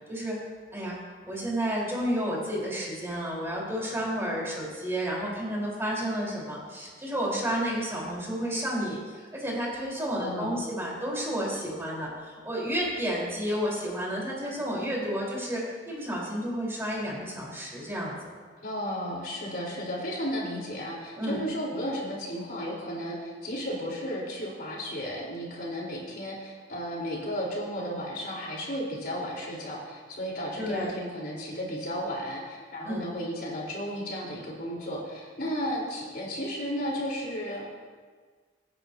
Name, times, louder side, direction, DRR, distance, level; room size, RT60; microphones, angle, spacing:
voice 1, 1.2-18.3 21.2-21.4 30.6-30.9 32.8-33.0, equal, 15° right, -5 dB, 3.9 m, -31 dB
voice 2, 10.2-10.6 18.6-37.6, equal, 55° left, -4 dB, 3.7 m, -34 dB
24.5 x 9.9 x 2.7 m, 1.5 s
head